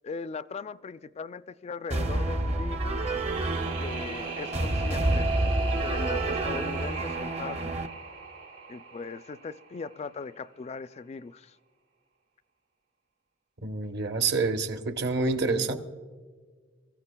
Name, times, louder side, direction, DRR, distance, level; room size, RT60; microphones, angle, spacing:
voice 1, 0.0-3.0 3.8-5.3 5.8-7.7 8.7-11.6, left 4 dB, 35° left, 0.3 m, -39 dB
sound 1, 1.9-7.9, right 1 dB, 35° right, 0.6 m, -29 dB
sound 2, 2.8-9.8, right 4 dB, 80° right, 4.6 m, -38 dB
voice 2, 13.6-15.7, right 3 dB, 55° right, 0.9 m, -27 dB
23.0 x 14.5 x 2.2 m
head